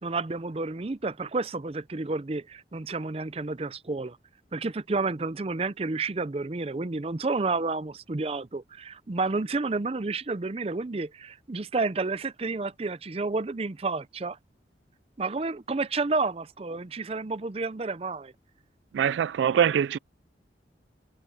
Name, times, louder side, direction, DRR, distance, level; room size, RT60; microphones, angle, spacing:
voice 1, 0.0-4.2 4.5-14.4 15.2-18.3, right 3 dB, 35° right, 0.5 m, -30 dB
voice 2, 18.9-20.0, right 8 dB, 90° right, 0.3 m, -23 dB
head